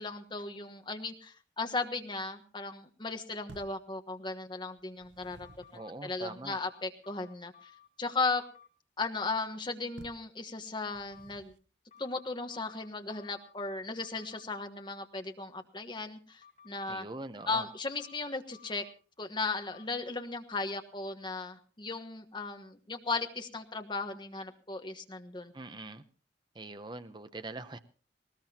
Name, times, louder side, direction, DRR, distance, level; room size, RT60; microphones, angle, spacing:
voice 1, 0.0-5.7 6.0-7.7 8.0-8.4 9.0-11.5 12.0-17.0 17.5-18.8 19.2-25.5, left 3 dB, 25° left, 6 dB, 1.3 m, -36 dB
sound 1, 3.5-3.9 4.8-5.8 10.0-10.3 10.9-11.7, right 2 dB, 90° right, 1.0 m, -53 dB
sound 2, 5.4-5.9 6.5-7.9 8.2-8.7 10.8-11.3 11.9-13.5 14.0-14.4 16.4-16.9 17.4-18.9 19.4-19.9, left 8 dB, 40° left, 6.1 m, -58 dB
voice 2, 5.7-6.6 16.9-17.7 25.5-26.0 26.5-27.8, right 2 dB, 25° right, 10 dB, 0.7 m, -43 dB
19.5 x 19.0 x 2.9 m, 0.38 s
head